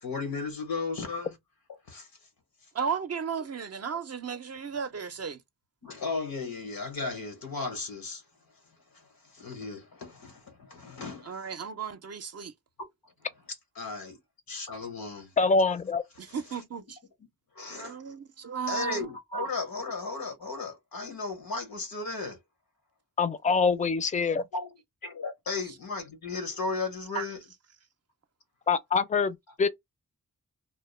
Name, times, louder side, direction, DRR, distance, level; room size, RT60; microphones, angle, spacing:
voice 1, 0.0-1.4 1.9-2.1 5.8-8.2 8.9-11.5 13.8-14.2 14.5-15.3 16.5-16.6 17.5-18.1 18.7-22.4 24.5-24.7 25.0-27.4, left 3 dB, 90° left, 1.0 m, -35 dB
voice 2, 2.7-5.4 11.3-12.5 16.2-17.0 17.7-19.1 27.1-27.3, right 6 dB, 50° right, 0.4 m, -34 dB
voice 3, 15.4-16.0 23.2-24.4 28.7-29.7, left 4 dB, 20° left, 0.4 m, -25 dB
2.1 x 2.1 x 3.1 m
cardioid pair, 40°, 34 cm